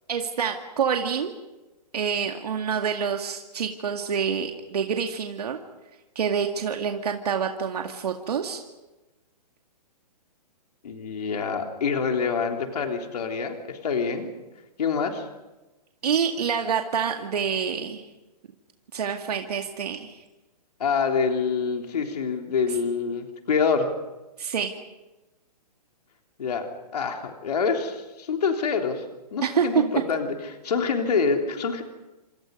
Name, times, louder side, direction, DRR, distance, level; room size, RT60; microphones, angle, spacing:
voice 1, 0.1-1.3 1.9-5.6 6.2-8.6 16.0-18.0 18.9-20.2 24.4-24.8 29.4-29.8, right 7 dB, 65° right, 4 dB, 2.1 m, -27 dB
voice 2, 10.8-14.3 14.8-15.3 20.8-23.9 26.4-26.7 26.9-29.0 29.3-31.8, left 5 dB, 70° left, 3 dB, 3.4 m, -26 dB
28.5 x 27.0 x 5.4 m, 1.1 s
hypercardioid pair, 170°, 21 cm